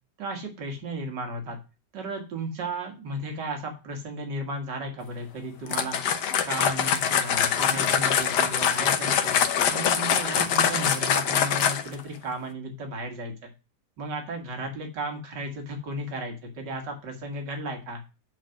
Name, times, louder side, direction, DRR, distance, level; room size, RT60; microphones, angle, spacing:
voice 1, 0.2-1.6 1.9-6.0 6.5-9.4 9.7-13.5 14.0-18.0, right 1 dB, 90° right, 3 dB, 2.3 m, -34 dB
sound 1, 5.7-12.0, left 8 dB, 75° left, 1.5 m, -24 dB
9.2 x 4.1 x 5.7 m, 0.30 s
omnidirectional pair, 1.8 m